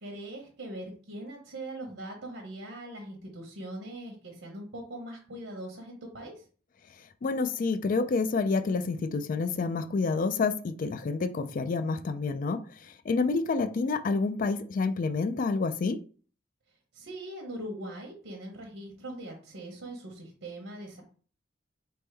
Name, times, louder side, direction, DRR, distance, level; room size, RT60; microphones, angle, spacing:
voice 1, 0.0-6.4 16.9-21.0, right 1 dB, 75° right, 1.0 m, -41 dB
voice 2, 7.2-16.0, left 4 dB, 45° left, 0.4 m, -28 dB
4.2 x 3.4 x 3.4 m
head